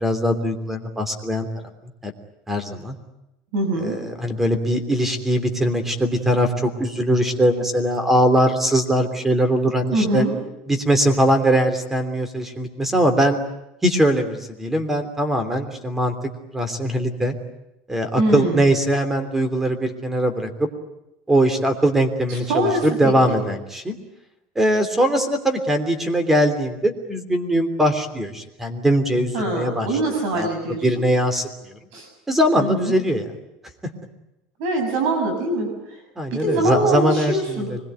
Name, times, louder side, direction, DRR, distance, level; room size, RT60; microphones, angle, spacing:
voice 1, 0.0-1.5 2.0-2.1 2.5-3.0 3.8-10.2 10.7-13.4 13.8-16.1 16.5-17.3 17.9-20.7 21.3-24.0 24.5-29.9 30.3-30.5 30.8-31.5 32.3-33.3 36.2-37.8, right 1 dB, 10° right, 9 dB, 3.0 m, -21 dB
voice 2, 3.5-4.0 9.9-10.3 18.2-18.7 22.3-23.4 29.3-31.1 31.9-32.1 32.6-33.0 34.6-36.0 36.3-37.7, right 1 dB, 65° right, 4 dB, 6.8 m, -23 dB
25.0 x 21.5 x 9.3 m, 0.91 s
supercardioid pair, 145°, 3 cm